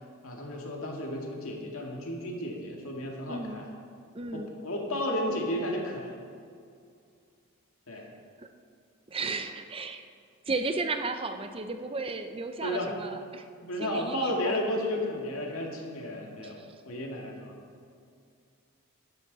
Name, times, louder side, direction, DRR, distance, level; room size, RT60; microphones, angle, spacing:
voice 1, 0.2-3.7 4.3-6.2 7.9-8.1 12.6-12.9 13.6-17.6, left 1 dB, 70° left, 0 dB, 1.9 m, -33 dB
voice 2, 3.3-3.6 4.1-4.5 9.1-10.1 10.5-13.4 13.8-14.5 16.4-16.5, right 3 dB, 25° right, 8 dB, 0.5 m, -34 dB
12.0 x 11.5 x 4.0 m, 2.3 s
head